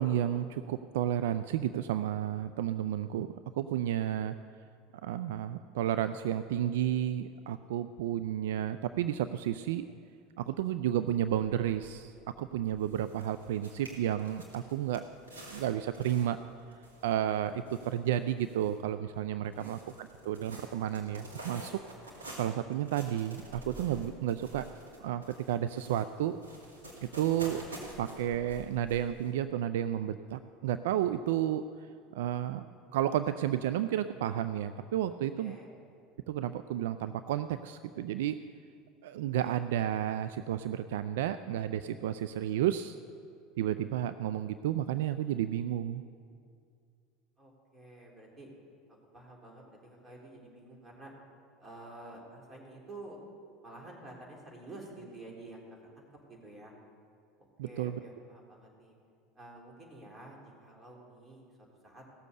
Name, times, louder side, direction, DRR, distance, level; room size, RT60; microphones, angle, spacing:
voice 1, 0.0-4.3 5.0-9.9 10.4-15.0 15.5-16.4 17.0-21.8 22.4-24.7 25.0-26.4 27.2-27.6 28.0-31.6 32.1-32.6 32.9-35.6 36.3-38.4 39.0-43.0 43.6-46.0 57.6-58.0, right 11 dB, 70° right, 11 dB, 0.3 m, -32 dB
sound 1, 10.9-11.0 11.3-29.3, right 1 dB, 85° right, 2.2 m, -50 dB
voice 2, 35.4-35.7 47.4-48.5 49.1-51.1 51.6-53.2 53.6-55.6 56.0-56.7 57.6-59.0 59.4-61.5 61.8-62.0, right 2 dB, 25° right, -1 dB, 3.4 m, -50 dB
16.5 x 7.0 x 6.7 m, 2.3 s
hypercardioid pair, 75°, 0 cm